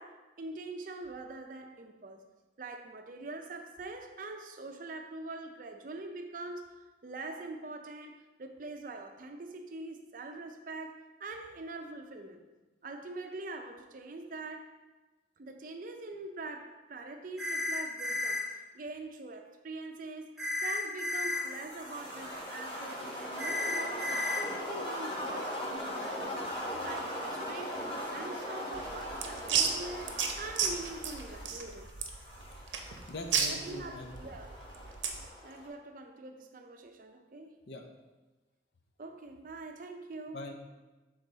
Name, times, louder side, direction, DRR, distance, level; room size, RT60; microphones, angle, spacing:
voice 1, 0.0-2.3 2.6-6.7 7.0-12.4 12.8-14.7 15.4-20.3 20.6-26.4 26.8-31.9 33.4-34.6 35.4-37.6 39.0-40.4, right 2 dB, 45° right, 0.5 m, -44 dB
sound 1, 17.4-18.4 20.4-21.4 23.4-24.4, left 2 dB, ahead, 1.1 m, -33 dB
sound 2, 21.3-35.7, equal, 25° left, 1.1 m, -40 dB
sound 3, 28.7-35.3, right 6 dB, 90° right, 0.6 m, -33 dB
voice 2, 33.1-34.1 37.7-37.9 40.3-40.7, left 1 dB, 65° left, 0.6 m, -42 dB
6.4 x 3.8 x 3.9 m
head